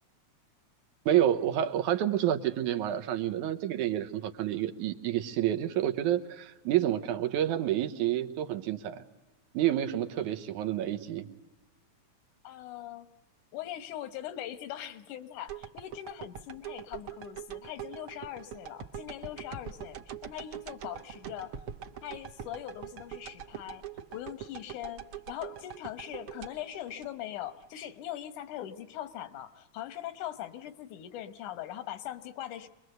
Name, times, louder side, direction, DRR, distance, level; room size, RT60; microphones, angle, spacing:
voice 1, 1.1-9.0 9.5-11.3, right 11 dB, 85° right, 7 dB, 2.5 m, -29 dB
voice 2, 12.4-13.1 13.5-21.6 22.0-23.8 24.1-32.7, left 12 dB, 90° left, 13 dB, 2.6 m, -41 dB
sound 1, 15.5-27.7 28.1-28.2, right 9 dB, 55° right, 1.7 m, -43 dB
25.0 x 22.0 x 7.9 m, 1.0 s
omnidirectional pair, 3.4 m